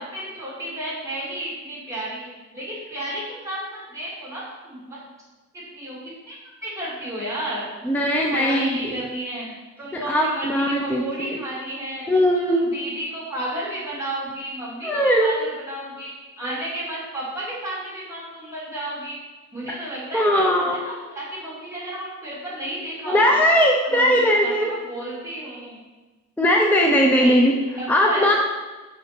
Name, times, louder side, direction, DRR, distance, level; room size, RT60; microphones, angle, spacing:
voice 1, 0.0-2.3 2.5-5.0 5.5-6.4 6.6-7.7 8.0-9.5 9.8-16.1 16.4-19.2 19.5-23.5 23.8-25.8 27.1-28.4, right 1 dB, 10° right, -8 dB, 2.7 m, -32 dB
voice 2, 7.8-9.0 9.9-11.4 12.1-12.8 14.8-15.4 20.1-20.8 23.1-24.7 26.4-27.5 27.9-28.3, equal, 5° left, 0 dB, 0.6 m, -19 dB
6.3 x 5.2 x 5.9 m, 1.2 s
wide cardioid pair, 160°, 31 cm